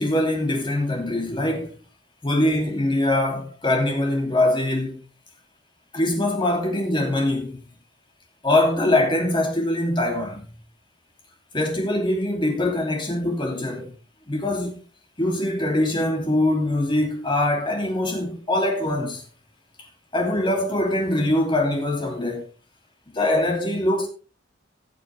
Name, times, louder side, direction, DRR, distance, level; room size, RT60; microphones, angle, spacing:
voice 1, 0.0-1.7 2.2-5.0 5.9-7.6 8.4-10.5 11.5-13.9 14.3-14.8 15.2-19.2 20.1-22.5 23.1-24.1, left 1 dB, 25° left, 2.7 m, -23 dB
17.5 x 6.8 x 3.3 m
head